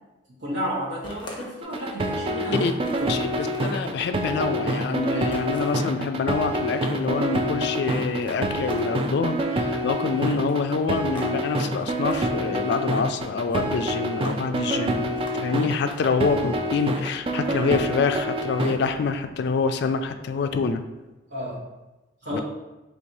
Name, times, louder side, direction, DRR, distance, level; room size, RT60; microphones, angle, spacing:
voice 1, 0.3-3.2 16.1-16.3 21.3-21.7 22.2-22.4, equal, 65° right, -5 dB, 1.4 m, -32 dB
sound 1, 1.0-2.0 2.4-2.5 2.8-3.9 5.3-5.9 6.5-7.1 7.8-9.2 10.2-11.3 11.6-12.2 13.2-13.6 14.0-14.5 15.1-16.3, left 1 dB, 25° left, 0.7 m, -45 dB
sound 2, 1.6-18.7, right 1 dB, 30° right, 0.3 m, -27 dB
voice 2, 3.1-20.8 22.3-22.4, left 5 dB, 60° left, 8 dB, 0.3 m, -26 dB
3.4 x 2.7 x 4.6 m, 1.1 s
head